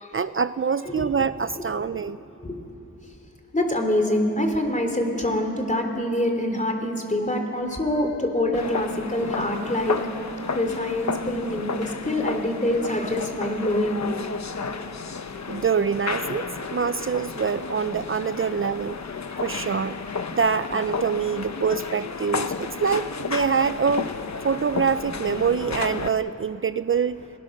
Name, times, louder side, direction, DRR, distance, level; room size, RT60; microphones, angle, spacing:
voice 1, 0.1-2.2 15.5-19.0 19.4-20.0 20.3-24.1 24.4-27.2, right 6 dB, 45° right, 13 dB, 0.5 m, -25 dB
voice 2, 3.5-10.0 10.4-14.0 15.5-15.7 18.4-18.5 19.2-19.4, left 1 dB, 25° left, 4 dB, 3.2 m, -25 dB
sound 1, 8.5-26.1, left 5 dB, 65° left, 1.1 m, -32 dB
29.5 x 20.0 x 6.6 m, 2.9 s
wide cardioid pair, 85°, 30 cm